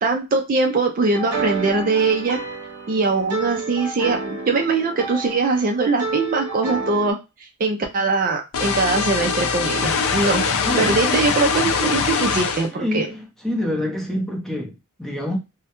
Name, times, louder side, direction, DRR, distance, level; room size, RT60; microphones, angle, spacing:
voice 1, 0.0-2.4 2.9-7.2 7.6-10.4 10.8-13.1, right 3 dB, 40° right, 0.4 m, -21 dB
sound 1, 1.0-7.1, right 3 dB, 80° right, 0.7 m, -30 dB
sound 2, 8.5-12.7, left 5 dB, 70° left, 0.5 m, -22 dB
voice 2, 10.6-11.2 12.7-15.4, left 1 dB, ahead, 0.6 m, -27 dB
2.2 x 2.0 x 2.9 m
head